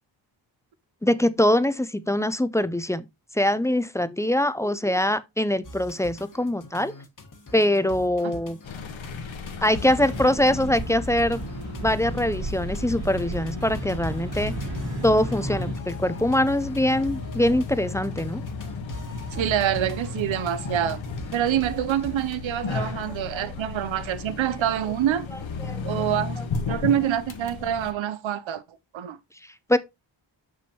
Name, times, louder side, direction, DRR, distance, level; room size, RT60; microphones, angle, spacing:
voice 1, 1.0-3.1 3.3-6.9 7.5-8.6 9.6-11.4 11.8-14.5 15.0-18.4 22.7-22.8 23.3-23.4 25.6-26.0 26.7-26.8 29.7-29.8, left 1 dB, 5° left, 0.3 m, -23 dB
sound 1, 5.6-22.4, left 2 dB, 45° left, 1.4 m, -42 dB
sound 2, 8.6-27.9, left 4 dB, 90° left, 1.3 m, -35 dB
sound 3, 9.8-15.7, right 2 dB, 55° right, 3.0 m, -34 dB
voice 2, 19.3-21.0 21.3-25.3 25.8-26.4 26.7-28.6 28.9-29.2, right 10 dB, 85° right, 0.6 m, -26 dB
7.0 x 6.2 x 2.8 m
wide cardioid pair, 135°, 45 cm